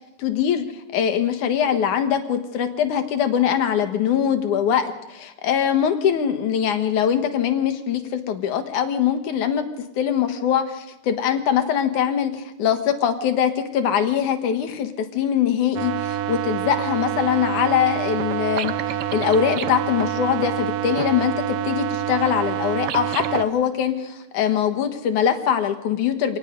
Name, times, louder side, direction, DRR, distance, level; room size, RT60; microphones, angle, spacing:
voice 1, 0.2-0.7 0.9-9.6 10.0-26.4, left 8 dB, 70° left, 8 dB, 2.9 m, -22 dB
sound 1, 15.7-23.4, right 11 dB, 85° right, 1.3 m, -26 dB
26.0 x 19.0 x 5.3 m, 0.94 s
omnidirectional pair, 3.8 m